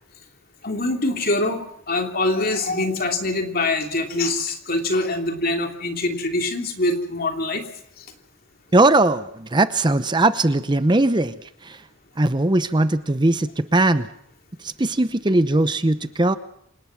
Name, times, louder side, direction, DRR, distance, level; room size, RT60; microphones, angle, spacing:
voice 1, 0.6-7.6 8.0-8.1, left 2 dB, 50° left, 4 dB, 3.2 m, -24 dB
voice 2, 8.7-11.3 11.6-11.8 12.2-14.1 14.6-16.4, right 2 dB, 25° right, 12 dB, 0.7 m, -19 dB
27.5 x 18.5 x 6.1 m, 0.72 s
head